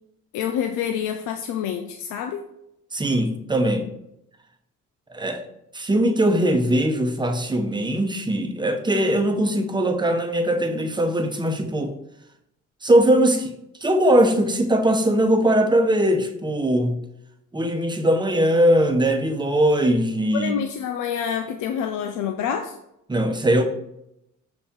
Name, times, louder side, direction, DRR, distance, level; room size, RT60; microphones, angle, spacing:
voice 1, 0.3-2.4 20.3-22.8, left 8 dB, 90° left, 6 dB, 0.5 m, -27 dB
voice 2, 2.9-3.9 5.1-5.4 5.7-11.9 12.8-13.5 13.8-17.0 17.5-20.6 23.1-23.6, right 1 dB, 15° right, 5 dB, 0.9 m, -20 dB
6.0 x 4.4 x 3.7 m, 0.81 s
cardioid pair, 90°, 30 cm